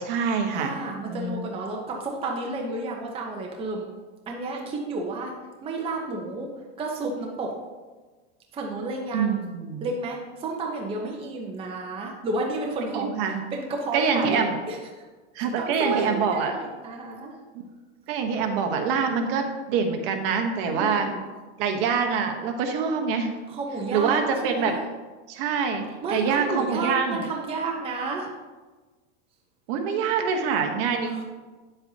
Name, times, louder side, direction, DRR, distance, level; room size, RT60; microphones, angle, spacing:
voice 1, 0.0-0.8 1.0-1.4 9.1-9.9 12.9-13.4 13.9-14.6 15.3-16.5 18.1-21.1 21.6-23.3 23.9-24.8 25.3-27.2 29.7-31.2, right 5 dB, 50° right, 4 dB, 1.1 m, -25 dB
voice 2, 0.5-3.9 4.3-5.3 5.6-6.5 6.8-7.5 8.5-9.4 9.8-13.1 13.5-14.4 14.7-14.8 15.4-17.3 20.7-21.2 23.5-24.8 26.0-28.3 31.1-31.2, right 2 dB, 15° right, 0 dB, 0.8 m, -31 dB
9.4 x 7.8 x 2.8 m, 1.3 s
supercardioid pair, 155°, 35 cm